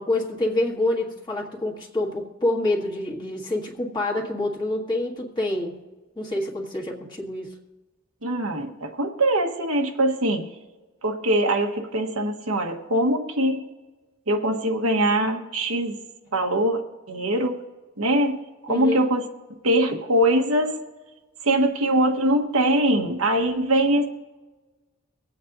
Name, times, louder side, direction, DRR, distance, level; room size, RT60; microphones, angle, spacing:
voice 1, 0.0-5.8 6.2-7.6 18.7-19.0, left 1 dB, 20° left, -2 dB, 1.8 m, -27 dB
voice 2, 8.2-10.4 11.0-13.6 14.3-15.9 16.3-16.8 17.1-17.5 18.0-18.4 18.6-19.2 19.6-20.8 21.4-24.1, right 1 dB, 90° right, 3 dB, 1.3 m, -22 dB
24.5 x 8.6 x 2.7 m, 1.2 s
head